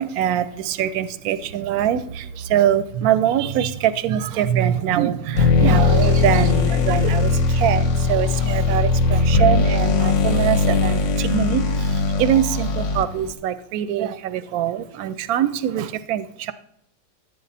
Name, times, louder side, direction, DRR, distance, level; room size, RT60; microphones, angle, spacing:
voice 1, 0.0-16.5, right 10 dB, 70° right, 14 dB, 1.0 m, -23 dB
sound 1, 5.3-13.3, left 4 dB, 55° left, 1.0 m, -19 dB
11.0 x 8.6 x 4.1 m, 0.75 s
omnidirectional pair, 1.8 m